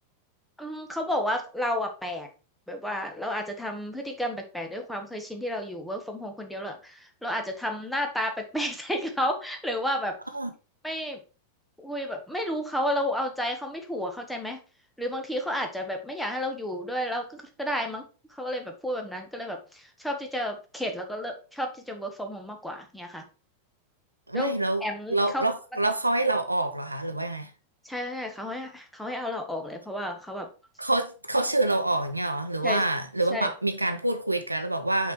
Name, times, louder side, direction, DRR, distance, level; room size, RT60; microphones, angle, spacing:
voice 1, 0.6-2.3 2.7-10.1 10.8-11.2 11.8-14.6 15.0-18.1 18.4-23.2 24.3-24.5 24.8-25.5 27.8-30.5 32.6-32.8 33.3-33.5, equal, ahead, 1.4 m, -31 dB
voice 2, 24.3-24.8 25.1-27.5 30.8-35.1, right 2 dB, 85° right, 0.8 m, -26 dB
5.9 x 4.7 x 4.5 m
figure-of-eight pair, 90°, 0 cm